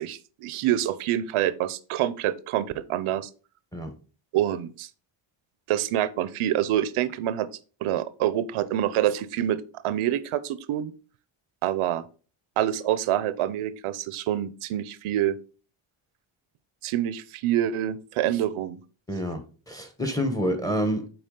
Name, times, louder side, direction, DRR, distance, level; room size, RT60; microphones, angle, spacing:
voice 1, 0.0-3.3 4.3-4.9 5.7-7.5 7.8-10.9 11.6-12.0 12.6-15.4 16.8-18.8, right 12 dB, 85° right, 0.7 m, -26 dB
voice 2, 19.1-21.1, equal, 5° left, 1.0 m, -28 dB
7.9 x 4.5 x 3.7 m
cardioid pair, 160°, 49 cm